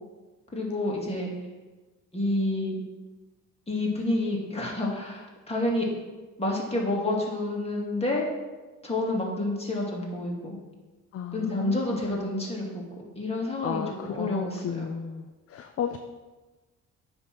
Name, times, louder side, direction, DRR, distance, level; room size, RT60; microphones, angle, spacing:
voice 1, 0.5-1.3 2.1-2.8 3.7-5.9 6.4-8.3 8.8-10.6 11.3-12.8 13.2-14.8, left 1 dB, 20° left, -2 dB, 2.3 m, -29 dB
voice 2, 11.1-12.0 13.6-16.0, left 8 dB, 50° left, 7 dB, 0.5 m, -33 dB
9.6 x 3.6 x 5.9 m, 1.2 s
cardioid pair, 90°, 30 cm